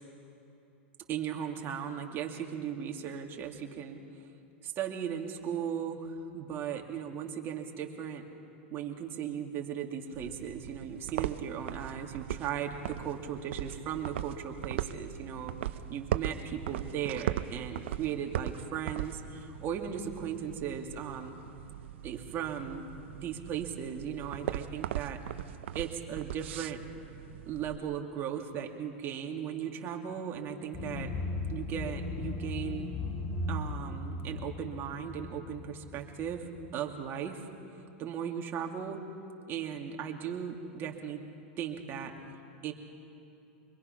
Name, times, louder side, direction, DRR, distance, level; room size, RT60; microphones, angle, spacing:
voice 1, 1.1-4.0 4.6-8.2 8.7-15.5 15.9-21.3 22.0-22.8 23.1-25.2 25.7-26.9 27.5-31.1 31.5-32.9 33.5-37.4 38.0-39.0 39.5-41.2 41.6-42.1 42.6-42.7, right 8 dB, 35° right, 2 dB, 2.3 m, -37 dB
sound 1, 10.1-27.8, right 12 dB, 75° right, 0.7 m, -39 dB
sound 2, 30.7-36.7, left 2 dB, 30° left, 1.6 m, -37 dB
25.0 x 22.0 x 5.9 m, 2.9 s
hypercardioid pair, 125°, 6 cm